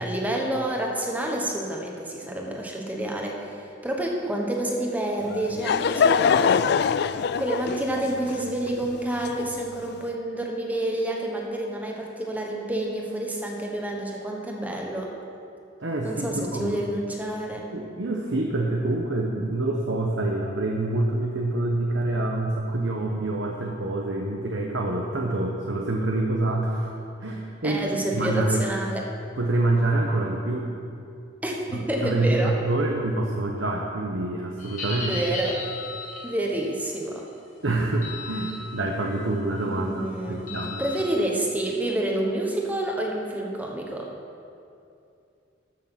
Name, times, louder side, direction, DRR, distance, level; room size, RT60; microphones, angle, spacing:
voice 1, 0.0-3.6 3.8-6.6 7.4-15.1 16.0-17.7 27.6-29.1 31.4-32.6 35.1-35.6 36.2-37.3 39.7-44.1, right 1 dB, 10° right, 0 dB, 1.2 m, -28 dB
Laughter / Crowd, 5.2-9.9, left 6 dB, 55° left, 0.3 m, -24 dB
voice 2, 15.8-16.8 17.7-26.9 27.2-28.7 29.4-30.7 31.7-35.2 37.6-39.9 40.3-40.8, right 2 dB, 70° right, 0 dB, 1.0 m, -26 dB
sound 1, 34.6-36.3 38.0-38.5 39.0-39.2 40.5-41.0, left 3 dB, 40° left, 2.2 m, -35 dB
13.5 x 6.6 x 5.8 m, 2.6 s
head